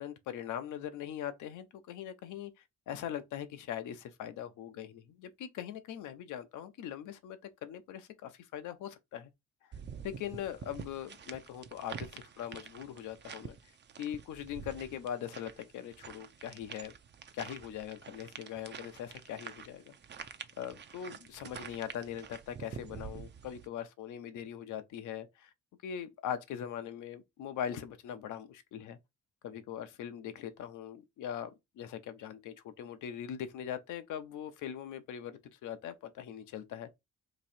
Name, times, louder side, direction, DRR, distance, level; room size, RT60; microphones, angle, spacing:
voice 1, 0.0-9.3 10.0-13.7 14.0-16.9 17.3-19.9 20.6-25.5 25.8-29.0 29.4-36.9, left 9 dB, 90° left, 0.7 m, -41 dB
sound 1, 9.7-23.7, right 7 dB, 35° right, 0.5 m, -48 dB
3.0 x 2.6 x 4.2 m
cardioid pair, 95°, 30 cm